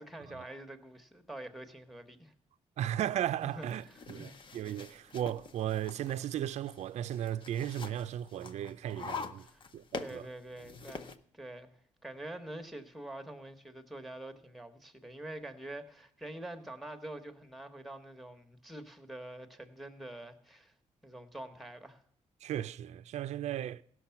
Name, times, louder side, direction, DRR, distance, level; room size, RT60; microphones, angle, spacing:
voice 1, 0.0-2.3 3.4-4.4 9.4-9.6 10.0-20.7 21.0-22.0, right 1 dB, ahead, 1.0 m, -46 dB
voice 2, 2.8-9.5 9.7-10.3 22.4-23.8, right 11 dB, 70° right, 0.4 m, -36 dB
sound 1, 3.4-11.2, left 5 dB, 45° left, 0.7 m, -46 dB
16.5 x 6.3 x 5.7 m
cardioid pair, 135°, 12 cm